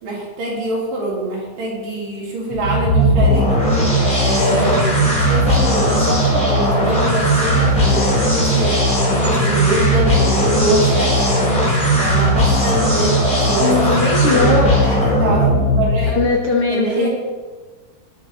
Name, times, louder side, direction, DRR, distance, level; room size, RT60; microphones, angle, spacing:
voice 1, 0.0-3.6 4.2-8.8 9.2-11.4 12.0-13.8 14.3-16.2 16.7-17.1, right 2 dB, 75° right, -4 dB, 4.4 m, -24 dB
sound 1, 2.5-16.3, equal, 20° left, 1.8 m, -17 dB
voice 2, 13.6-14.7 16.1-17.1, left 4 dB, 50° left, -1 dB, 2.1 m, -18 dB
18.0 x 6.6 x 4.2 m, 1.3 s
omnidirectional pair, 3.8 m